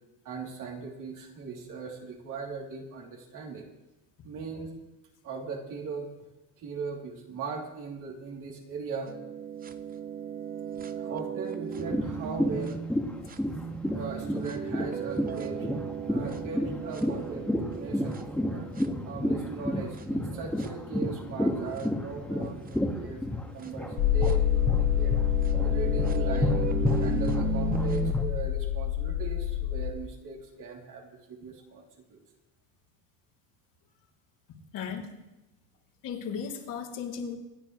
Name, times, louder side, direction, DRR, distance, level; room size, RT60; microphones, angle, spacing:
voice 1, 0.3-3.7 4.2-4.7 5.2-6.1 6.6-9.1 11.0-12.8 13.9-15.7 16.1-18.7 19.0-25.2 25.6-31.8 32.1-32.2, right 5 dB, 55° right, -1 dB, 3.4 m, -39 dB
sound 1, 9.1-12.9 13.3-19.4 19.9-20.0 20.6-20.7 21.8-21.9 22.7-22.8 23.6-28.1, right 7 dB, 25° right, 0.7 m, -36 dB
sound 2, 11.7-24.9 25.1-28.2, left 1 dB, 5° left, 1.9 m, -31 dB
sound 3, 24.0-29.9, left 11 dB, 90° left, 5.2 m, -27 dB
voice 2, 34.7-35.1 36.0-37.4, left 6 dB, 55° left, -2 dB, 3.3 m, -35 dB
26.5 x 10.0 x 3.3 m, 1.0 s
cardioid pair, 120°, 38 cm